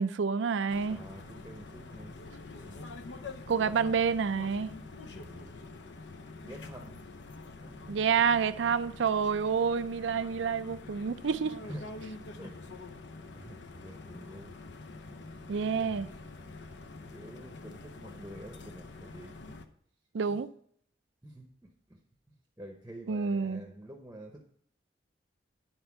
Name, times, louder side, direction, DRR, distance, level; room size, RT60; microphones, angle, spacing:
voice 1, 0.0-1.0 3.5-4.7 7.9-11.6 15.5-16.1 20.1-20.5 23.1-23.7, right 6 dB, 80° right, 0.4 m, -28 dB
sound 1, 0.7-19.7, left 3 dB, 70° left, 0.7 m, -46 dB
voice 2, 0.9-2.2 2.6-2.8 5.1-5.5 6.4-7.1 7.4-8.1 11.6-11.8 12.4-12.7 13.3-14.6 15.2-15.5 15.8-16.0 17.1-19.5 20.2-20.4 21.2-22.0 22.3-24.5, right 1 dB, 10° right, 0.8 m, -48 dB
10.5 x 4.4 x 5.8 m
head